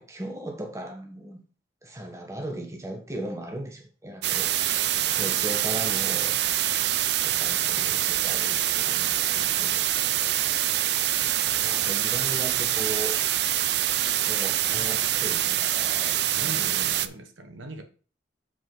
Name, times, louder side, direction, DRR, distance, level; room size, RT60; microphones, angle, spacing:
voice 1, 0.0-1.4 1.8-4.5 5.1-6.3 7.1-9.8 11.2-13.2 14.2-16.7, right 1 dB, 15° right, 1.2 m, -37 dB
sound 1, 4.2-17.1, right 12 dB, 60° right, 0.4 m, -25 dB
voice 2, 4.7-6.6 7.2-7.7 11.6-11.9 14.7-15.1 16.3-17.8, right 1 dB, 85° right, 1.3 m, -43 dB
7.1 x 5.5 x 3.9 m
head